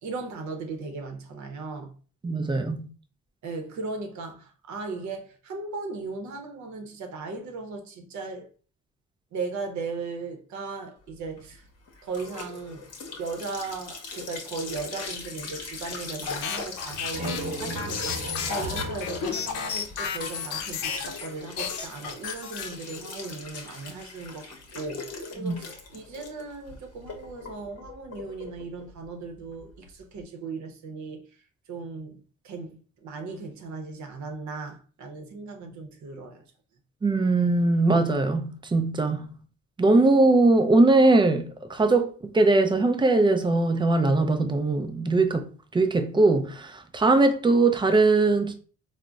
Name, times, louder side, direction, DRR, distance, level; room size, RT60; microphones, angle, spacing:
voice 1, 0.0-1.9 3.4-8.5 9.3-11.6 12.0-12.9 13.2-31.2 31.7-36.4, right 4 dB, 70° right, 0.7 m, -37 dB
voice 2, 2.2-2.9 25.4-25.5 37.0-39.3 39.8-48.5, right 2 dB, 15° right, 0.3 m, -21 dB
sound 1, 11.1-30.2, left 4 dB, 55° left, 0.8 m, -41 dB
sound 2, 16.3-21.3 21.6-23.2, left 7 dB, 85° left, 0.5 m, -32 dB
sound 3, 16.7-20.4, right 1 dB, 35° right, 1.0 m, -36 dB
3.8 x 2.0 x 2.2 m
cardioid pair, 90°, 30 cm